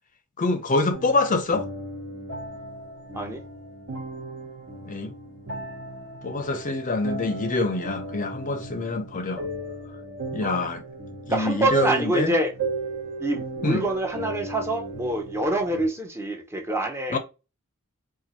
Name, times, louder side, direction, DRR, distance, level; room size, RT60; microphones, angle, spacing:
voice 1, 0.4-1.7 4.9-5.1 6.2-9.4 10.3-10.8 11.3-12.3 13.6-13.8 17.1-17.2, left 2 dB, 35° left, 0.6 m, -25 dB
sound 1, 0.9-15.9, right 2 dB, 60° right, 1.3 m, -36 dB
voice 2, 11.3-12.5 13.2-17.2, right 1 dB, 10° right, 0.6 m, -26 dB
4.4 x 2.4 x 2.7 m
head